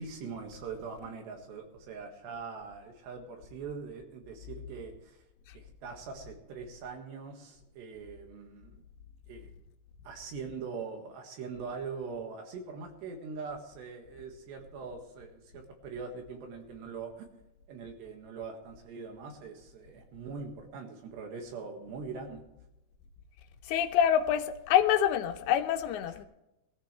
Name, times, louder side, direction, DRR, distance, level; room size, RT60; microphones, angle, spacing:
voice 1, 0.0-5.2 5.5-8.8 9.3-9.5 10.1-17.3 17.7-22.4 26.1-26.3, right 5 dB, 75° right, 3 dB, 3.8 m, -42 dB
voice 2, 23.7-26.2, left 9 dB, 85° left, 8 dB, 3.2 m, -26 dB
19.5 x 14.0 x 3.2 m, 0.93 s
omnidirectional pair, 5.0 m